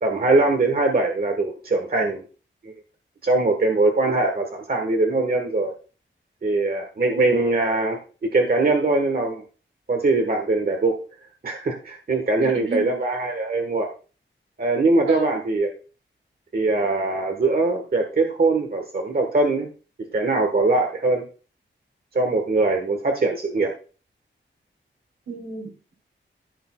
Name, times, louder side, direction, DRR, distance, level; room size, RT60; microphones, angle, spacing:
voice 1, 0.0-2.2 2.6-2.7 3.2-5.7 6.4-8.0 8.3-9.4 9.9-11.0 11.4-13.9 14.6-15.7 16.5-19.7 20.1-21.2 22.1-23.7, right 2 dB, 50° right, 1.4 m, -21 dB
voice 2, 12.4-13.0 15.1-15.4 25.3-25.9, right 4 dB, 75° right, 3.1 m, -33 dB
15.0 x 6.7 x 2.3 m
wide cardioid pair, 135°, 20 cm